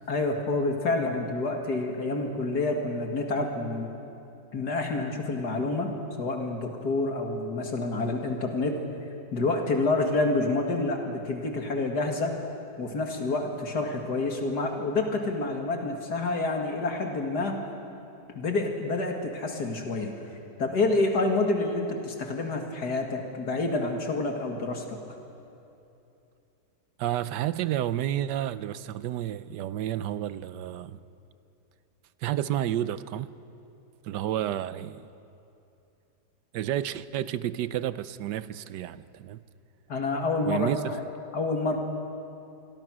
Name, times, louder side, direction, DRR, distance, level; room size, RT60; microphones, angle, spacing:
voice 1, 0.1-3.9 4.5-8.8 9.3-12.4 12.8-17.6 18.3-20.1 20.6-25.0 39.9-41.0 41.3-41.8, left 2 dB, 70° left, 2.6 m, -28 dB
voice 2, 27.0-31.0 32.2-33.3 34.0-35.1 36.5-39.4 40.5-41.0, right 12 dB, 90° right, 1.3 m, -30 dB
27.0 x 23.0 x 6.2 m
omnidirectional pair, 1.8 m